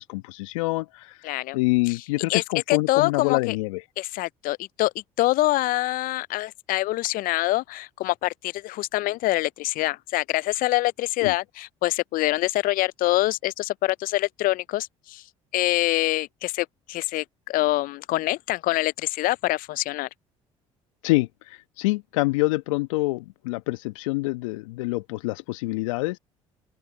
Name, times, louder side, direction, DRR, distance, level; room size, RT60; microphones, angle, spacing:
voice 1, 0.0-1.2 1.5-3.8 11.2-11.3 21.0-26.2, left 22 dB, 75° left, 1.4 m, -26 dB
voice 2, 1.2-1.6 1.9-2.0 2.3-2.4 2.7-3.6 4.0-4.9 5.2-15.2 15.5-20.1, left 18 dB, 60° left, 0.5 m, -25 dB
open air
hypercardioid pair, 55°, 17 cm